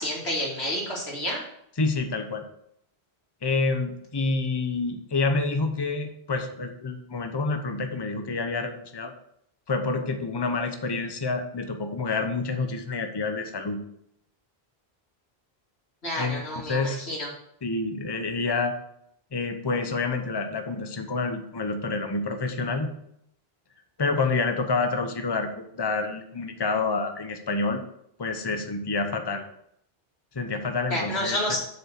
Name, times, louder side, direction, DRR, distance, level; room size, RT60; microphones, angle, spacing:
voice 1, 0.0-1.5 16.0-17.3 30.9-31.6, left 1 dB, 90° left, -3 dB, 3.1 m, -29 dB
voice 2, 1.8-2.4 3.4-9.1 9.7-13.8 16.2-17.0 17.6-18.8 19.3-22.9 24.0-27.8 28.2-29.4 30.3-31.4, left 3 dB, 25° left, 6 dB, 0.9 m, -28 dB
7.7 x 5.5 x 6.6 m, 0.73 s
omnidirectional pair, 1.1 m